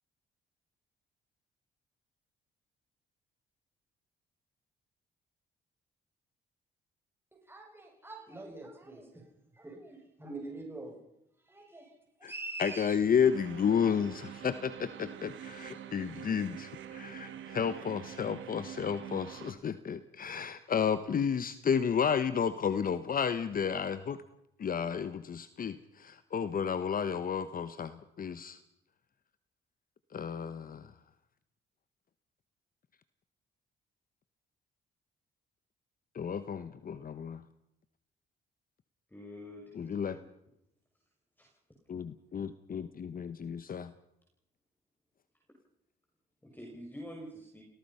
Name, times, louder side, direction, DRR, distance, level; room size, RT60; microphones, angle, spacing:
voice 1, 7.5-9.3 9.5-11.0 11.4-11.9 12.2-12.9, right 2 dB, 10° right, 0 dB, 7.5 m, -44 dB
voice 2, 12.6-24.2 24.6-28.6 30.1-30.9 36.1-37.4 39.7-40.2 41.9-43.9, left 7 dB, 45° left, 13 dB, 1.1 m, -32 dB
sound 1, 13.2-19.5, right 10 dB, 75° right, 2.5 m, -46 dB
voice 3, 39.1-40.3 41.4-41.5 46.4-47.6, equal, 10° left, 0 dB, 6.0 m, -47 dB
30.0 x 17.5 x 5.7 m, 0.80 s
cardioid pair, 90°, 20 cm